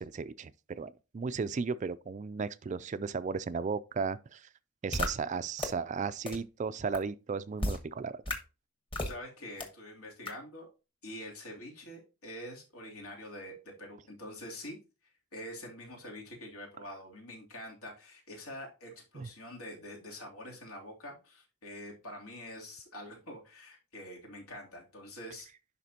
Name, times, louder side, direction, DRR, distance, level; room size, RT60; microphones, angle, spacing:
voice 1, 0.0-4.5 4.8-8.2 19.1-19.3, right 5 dB, 35° right, 0.3 m, -35 dB
sound 1, 4.9-5.1 5.6-5.7 6.3-6.4 6.9-7.0 7.6-7.8 8.3-8.4 8.9-9.1 9.6-9.7 10.3-10.4, left 1 dB, 25° left, 1.2 m, -31 dB
voice 2, 9.0-10.7 11.0-14.8 15.0-25.5, left 1 dB, 85° left, 2.9 m, -46 dB
11.0 x 4.3 x 2.8 m
head